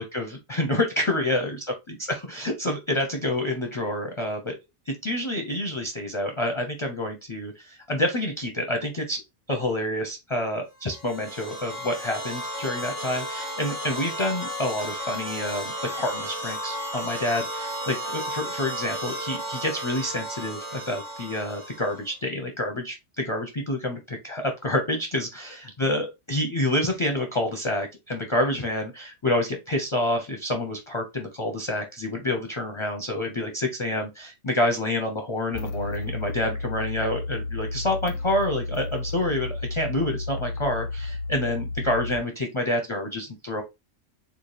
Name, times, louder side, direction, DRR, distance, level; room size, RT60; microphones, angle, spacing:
voice 1, 0.0-1.6 1.9-4.6 4.9-43.6, left 1 dB, 35° left, 3 dB, 0.6 m, -28 dB
sound 1, 10.8-22.1, equal, 80° right, 1.7 m, -34 dB
sound 2, 35.5-42.2, left 3 dB, 85° left, 0.9 m, -32 dB
4.2 x 2.3 x 3.2 m, 0.22 s
omnidirectional pair, 1.2 m